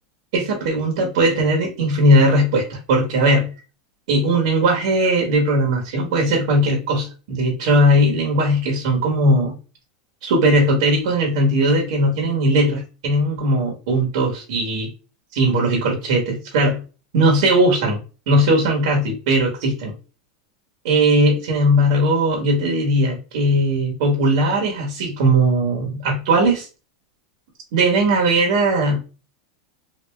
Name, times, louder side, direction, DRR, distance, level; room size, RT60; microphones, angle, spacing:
voice 1, 0.3-3.5 4.1-9.6 10.2-14.9 15.3-16.8 17.1-18.0 18.3-19.9 20.8-26.7 27.7-29.0, right 1 dB, 55° right, 0 dB, 1.2 m, -18 dB
3.3 x 2.6 x 3.1 m, 0.34 s
supercardioid pair, 180°, 4 cm